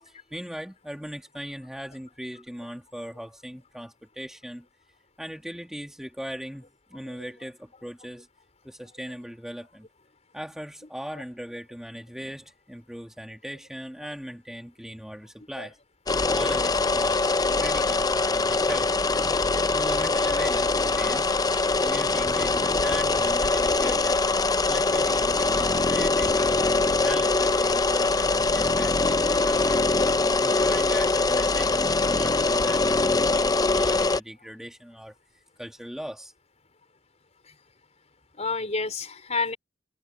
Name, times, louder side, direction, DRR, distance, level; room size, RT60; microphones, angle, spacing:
voice 1, 0.0-4.6 5.2-8.3 8.6-9.9 10.3-15.8 16.3-17.2 17.6-18.9 19.7-24.2 24.7-29.8 30.4-35.1 35.6-36.3, equal, 5° right, 1.6 m, -39 dB
sound 1, 16.1-34.2, left 3 dB, 20° left, 0.5 m, -23 dB
voice 2, 38.4-39.6, left 4 dB, 40° left, 4.4 m, -30 dB
head